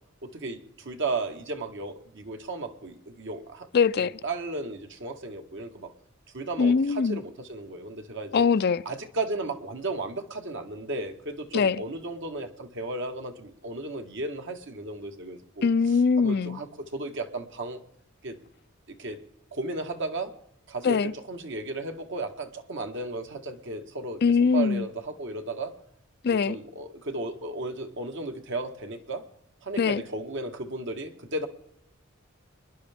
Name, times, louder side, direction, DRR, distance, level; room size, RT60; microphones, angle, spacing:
voice 1, 0.2-3.7 4.2-5.9 6.3-8.5 8.8-15.7 16.2-17.8 18.2-18.4 19.0-19.2 19.5-20.3 20.7-25.7 26.2-29.2 29.6-31.5, right 2 dB, 65° right, 1.5 m, -34 dB
voice 2, 3.7-4.2 6.6-7.2 8.3-8.8 11.5-11.8 15.6-16.6 20.8-21.1 24.2-24.9 26.2-26.6 29.8-30.0, left 5 dB, 50° left, 0.4 m, -22 dB
26.5 x 11.0 x 3.5 m
head